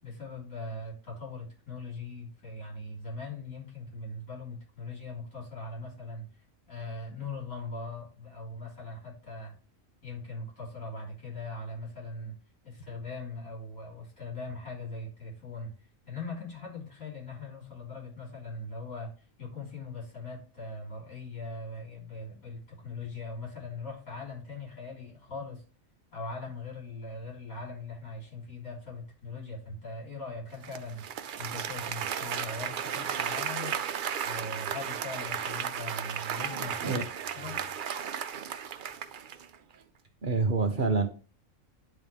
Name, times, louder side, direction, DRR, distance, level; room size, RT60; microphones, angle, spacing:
voice 1, 0.0-6.3 6.7-9.5 10.0-12.4 12.6-15.7 16.1-19.1 19.4-25.6 26.1-31.0 31.4-33.8 34.2-37.0 37.3-37.6, left 3 dB, 75° left, -4 dB, 4.1 m, -40 dB
Applause, 30.6-39.6, right 8 dB, 70° right, 0.4 m, -34 dB
voice 2, 40.2-41.1, right 4 dB, 40° right, 5 dB, 0.9 m, -26 dB
11.0 x 4.0 x 3.4 m, 0.37 s
omnidirectional pair, 1.5 m